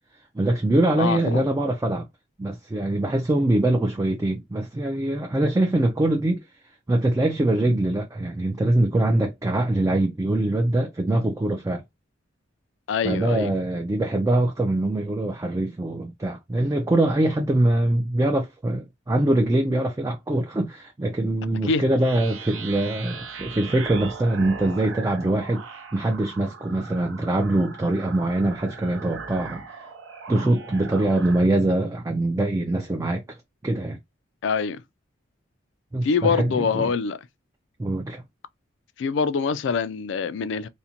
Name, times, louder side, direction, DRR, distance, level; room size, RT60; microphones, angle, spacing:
voice 1, 0.3-2.1 2.4-6.4 6.9-11.8 13.0-29.9 30.3-33.4 33.6-34.0 35.9-36.9 37.8-38.2, right 1 dB, 15° right, 0.3 m, -23 dB
voice 2, 1.0-1.4 12.9-13.5 21.7-21.8 34.4-34.8 36.0-37.2 39.0-40.7, left 5 dB, 65° left, 0.3 m, -24 dB
sound 1, 22.0-31.5, right 5 dB, 90° right, 0.6 m, -39 dB
2.5 x 2.1 x 2.7 m
head